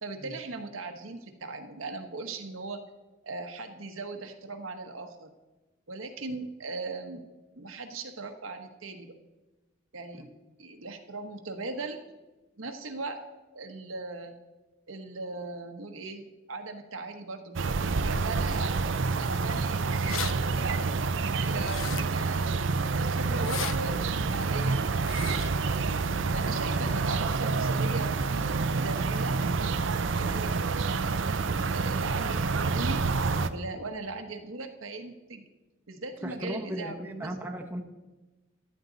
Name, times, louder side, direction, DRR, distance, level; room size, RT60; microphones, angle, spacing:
voice 1, 0.0-2.8 3.2-5.3 5.9-7.2 7.6-9.2 9.9-10.2 10.6-12.0 12.6-13.2 13.5-14.3 14.9-18.7 19.2-22.6 23.0-24.8 25.2-25.7 26.3-29.4 30.1-31.5 31.7-33.0 33.5-35.5 35.9-37.5, right 3 dB, 85° right, 5 dB, 1.3 m, -39 dB
sound 1, 17.6-33.5, right 4 dB, 65° right, 0.6 m, -28 dB
sound 2, 20.1-20.3 21.6-22.3 23.3-23.8 25.0-25.5, left 12 dB, 75° left, 0.4 m, -36 dB
voice 2, 36.2-37.8, right 1 dB, 10° right, 1 dB, 1.0 m, -37 dB
14.0 x 12.0 x 4.0 m, 1.1 s
head